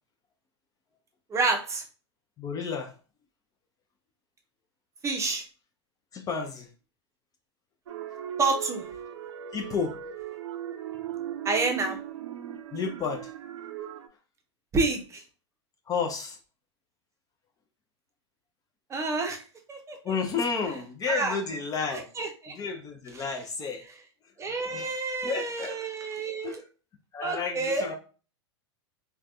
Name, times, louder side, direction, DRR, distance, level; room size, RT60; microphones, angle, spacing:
voice 1, 1.3-1.8 5.0-5.4 8.4-8.9 11.4-12.0 14.7-15.2 18.9-19.4 19.7-20.2 21.1-21.4 21.9-22.6 23.1-23.2 24.4-26.6 27.2-27.9, right 3 dB, 20° right, 3 dB, 0.6 m, -29 dB
voice 2, 2.4-2.9 6.1-6.7 9.5-9.9 12.7-13.3 15.9-16.4 20.0-22.1 22.5-23.8 24.7-25.8 26.4-26.6 27.1-27.9, left 5 dB, 25° left, 4 dB, 0.5 m, -31 dB
sound 1, 7.9-14.1, right 11 dB, 75° right, 0.4 m, -38 dB
3.2 x 2.2 x 2.5 m, 0.36 s
hypercardioid pair, 105°, 15 cm